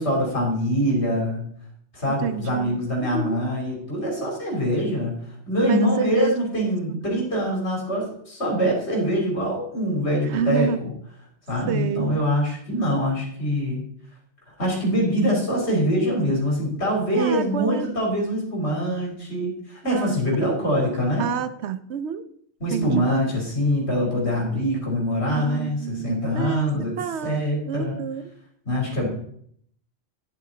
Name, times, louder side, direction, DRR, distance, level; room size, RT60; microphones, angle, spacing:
voice 1, 0.0-1.4 1.9-10.9 11.5-13.8 14.6-21.3 22.6-27.0 27.2-28.0 28.7-29.1, equal, 70° left, -1 dB, 3.7 m, -24 dB
voice 2, 2.1-3.4 5.7-7.3 10.3-10.8 11.7-12.2 17.1-17.9 19.8-20.5 21.2-22.2 22.7-23.1 25.4-26.7 27.0-28.3, right 7 dB, 75° right, 13 dB, 0.9 m, -29 dB
9.8 x 8.4 x 3.9 m, 0.64 s
omnidirectional pair, 1.2 m